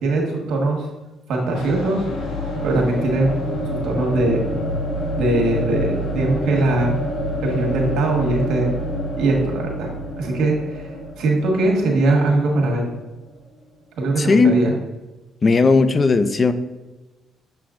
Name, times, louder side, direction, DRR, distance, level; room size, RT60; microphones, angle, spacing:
voice 1, 0.0-0.9 1.3-2.1 2.6-3.3 3.7-4.4 5.2-7.0 7.4-8.7 9.2-9.9 10.2-10.9 11.2-12.9 14.0-14.7, right 2 dB, 85° right, 0 dB, 1.4 m, -21 dB
sound 1, 1.5-13.3, equal, 85° left, 1.2 m, -27 dB
voice 2, 14.2-14.6 15.4-16.5, left 4 dB, 35° left, 11 dB, 0.4 m, -16 dB
7.0 x 6.0 x 2.5 m, 1.1 s
cardioid pair, 90°, 0 cm